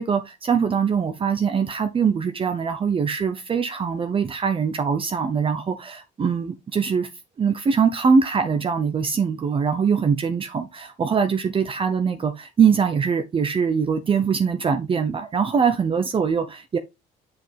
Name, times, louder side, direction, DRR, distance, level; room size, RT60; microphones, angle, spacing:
voice 1, 0.0-7.1 7.4-16.8, right 6 dB, 30° right, 0.8 m, -22 dB
7.7 x 5.8 x 3.5 m
cardioid pair, 110°, 17 cm